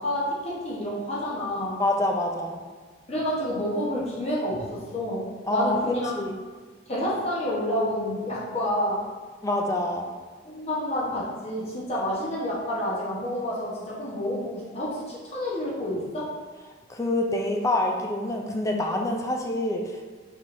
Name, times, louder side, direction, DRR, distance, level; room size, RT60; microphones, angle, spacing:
voice 1, 0.0-1.8 3.1-6.2 6.9-9.0 10.4-16.3, left 1 dB, 30° left, -7 dB, 0.9 m, -29 dB
voice 2, 1.8-2.6 5.5-5.8 6.2-6.3 9.4-10.1 16.9-19.8, left 1 dB, 15° left, 1 dB, 0.3 m, -26 dB
5.4 x 3.4 x 2.6 m, 1.5 s
head